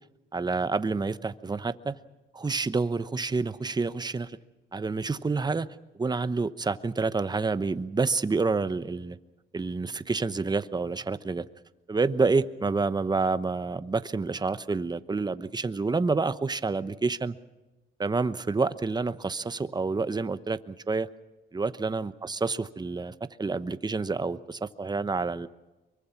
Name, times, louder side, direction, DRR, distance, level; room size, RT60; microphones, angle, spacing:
voice 1, 0.3-2.0 2.3-4.4 4.7-5.7 6.0-9.2 9.5-11.5 11.9-17.4 18.0-21.1 21.5-25.5, right 4 dB, 20° right, 14 dB, 1.0 m, -28 dB
24.5 x 23.0 x 5.9 m, 1.1 s
cardioid pair, 90°, 20 cm